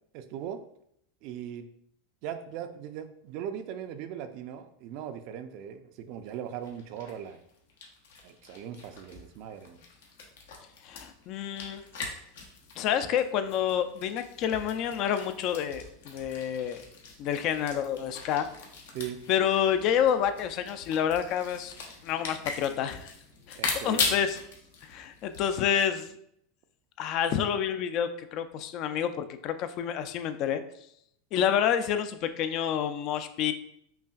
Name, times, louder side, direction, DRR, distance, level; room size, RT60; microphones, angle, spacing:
voice 1, 0.1-0.6 1.2-1.7 2.2-7.4 8.2-9.8 18.9-19.2 23.6-24.2, right 9 dB, 55° right, 9 dB, 0.4 m, -39 dB
sound 1, 6.2-6.3 6.6-25.8, left 4 dB, 90° left, 0.9 m, -40 dB
voice 2, 10.8-11.8 12.8-16.8 17.2-18.5 19.3-21.7 22.0-23.1 23.5-23.6 23.8-24.4 24.8-26.1 27.0-30.6 31.3-33.5, left 9 dB, 50° left, 10 dB, 0.4 m, -28 dB
5.5 x 2.4 x 2.3 m, 0.71 s
supercardioid pair, 125°, 0 cm